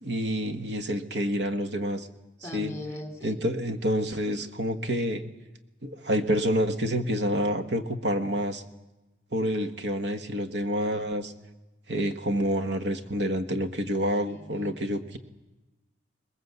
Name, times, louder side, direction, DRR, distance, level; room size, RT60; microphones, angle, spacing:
voice 1, 0.0-2.1 2.4-2.7 3.2-5.2 5.8-8.6 9.3-11.3 11.9-15.2, equal, 65° right, 7 dB, 1.4 m, -28 dB
voice 2, 2.4-3.4 14.3-14.7, left 1 dB, 15° left, 5 dB, 2.7 m, -39 dB
21.0 x 20.5 x 8.1 m, 1.0 s
head